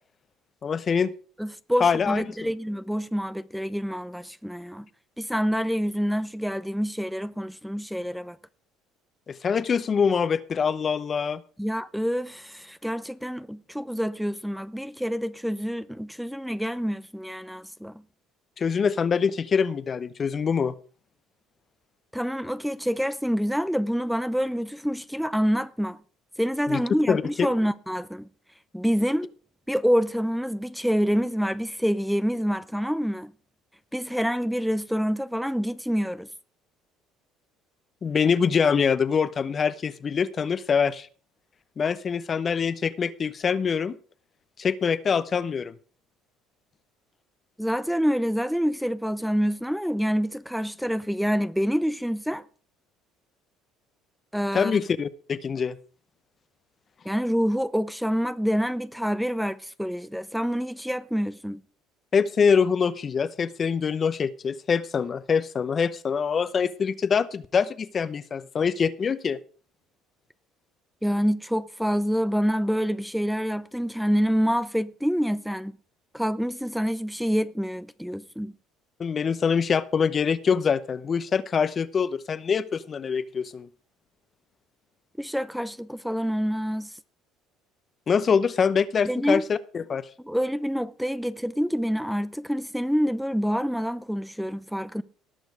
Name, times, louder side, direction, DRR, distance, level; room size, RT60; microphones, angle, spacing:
voice 1, 0.6-1.1 1.8-2.2 9.3-11.4 18.6-20.7 26.7-26.8 27.1-27.2 38.0-41.1 41.8-43.9 44.6-45.7 54.5-55.8 62.1-69.4 79.0-83.7 88.1-90.1, left 6 dB, 40° left, 0.8 m, -24 dB
voice 2, 1.4-4.9 5.2-8.4 11.6-18.0 22.1-26.0 26.4-28.3 28.7-29.3 29.7-33.3 33.9-36.3 47.6-52.4 54.3-54.8 57.0-61.6 71.0-75.7 76.1-78.5 85.2-86.9 89.0-89.4 90.2-95.0, equal, ahead, 0.7 m, -27 dB
18.5 x 6.2 x 4.8 m
supercardioid pair, 75°, 0 cm